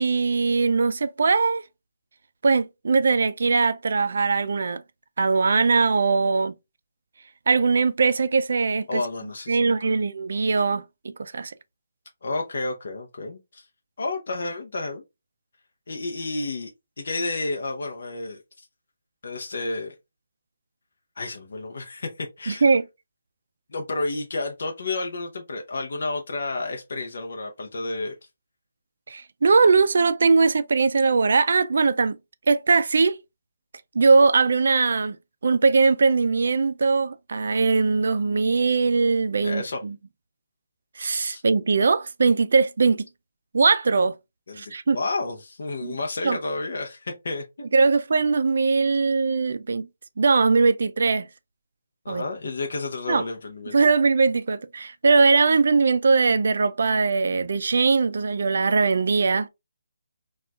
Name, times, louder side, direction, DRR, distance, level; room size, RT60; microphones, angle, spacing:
voice 1, 0.0-1.6 2.4-4.8 5.2-6.5 7.5-9.0 9.5-11.5 22.5-22.8 29.1-32.2 32.5-33.2 33.9-35.2 35.4-39.9 41.0-43.1 43.5-44.1 44.6-45.0 45.8-46.0 46.2-46.4 47.7-49.9 50.2-51.3 52.1-52.2 53.1-53.2 53.7-59.5, right 4 dB, 50° right, 0.3 m, -20 dB
voice 2, 8.9-10.0 12.2-13.7 14.0-15.0 15.9-16.7 17.0-18.7 19.2-19.9 21.2-22.7 23.7-28.1 39.4-39.8 41.3-41.4 44.5-47.7 52.0-53.8, left 2 dB, 50° left, 0.6 m, -31 dB
4.3 x 2.3 x 2.3 m
hypercardioid pair, 175°, 0 cm